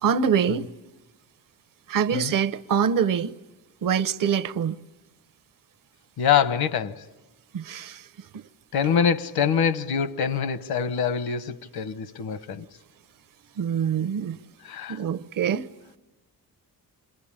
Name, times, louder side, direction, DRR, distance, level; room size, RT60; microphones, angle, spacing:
voice 1, 0.0-0.7 1.9-3.3 3.8-4.8 7.5-8.1 8.3-8.4 13.6-14.4 14.9-15.7, right 7 dB, 60° right, 0.8 m, -24 dB
voice 2, 6.2-7.0 8.7-12.6 14.6-15.0, left 7 dB, 75° left, 1.1 m, -25 dB
27.0 x 21.0 x 8.7 m
wide cardioid pair, 150°, 37 cm